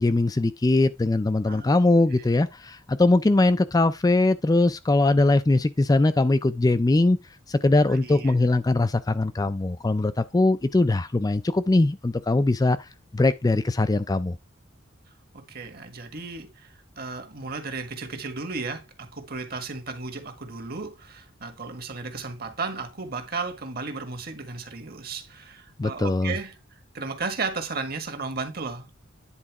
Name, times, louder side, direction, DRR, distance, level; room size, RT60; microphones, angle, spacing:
voice 1, 0.0-7.2 7.5-14.4 25.8-26.3, left 2 dB, 20° left, 0.4 m, -21 dB
voice 2, 7.8-8.3 15.3-28.9, right 4 dB, 50° right, 1.7 m, -34 dB
10.0 x 3.9 x 4.7 m
head